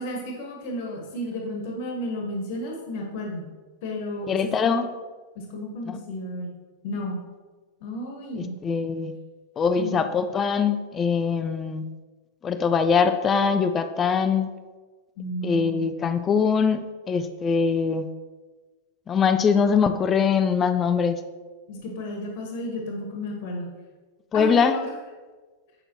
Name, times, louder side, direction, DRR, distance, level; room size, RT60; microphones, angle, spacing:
voice 1, 0.0-3.5 3.8-4.9 5.3-6.5 6.8-7.2 7.8-8.6 9.7-10.0 15.2-15.9 21.7-23.7 24.3-24.9, left 1 dB, 50° left, 1 dB, 1.3 m, -32 dB
voice 2, 4.3-4.8 5.9-6.0 8.4-9.1 9.6-11.8 12.4-14.5 15.4-18.1 19.1-21.2 24.3-24.8, left 6 dB, 25° left, 10 dB, 0.4 m, -22 dB
7.6 x 6.5 x 2.9 m, 1.3 s
figure-of-eight pair, 90°, 0 cm